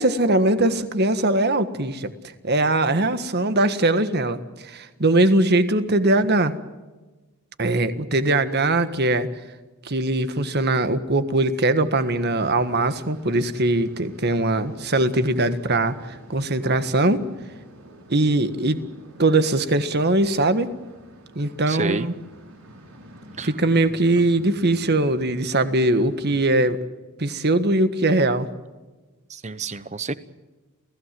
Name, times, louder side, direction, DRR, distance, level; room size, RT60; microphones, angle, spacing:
voice 1, 0.0-2.1 2.4-6.5 7.6-9.3 9.8-17.2 18.1-18.8 19.2-20.7 21.3-22.1 23.4-26.8 27.2-28.5, right 2 dB, 45° right, 11 dB, 1.5 m, -21 dB
sound 1, 11.8-26.6, equal, 70° right, 5.3 m, -47 dB
voice 2, 21.7-22.1 23.4-23.5 29.3-30.1, right 3 dB, 30° right, 15 dB, 1.0 m, -29 dB
28.5 x 16.0 x 7.6 m, 1.2 s
head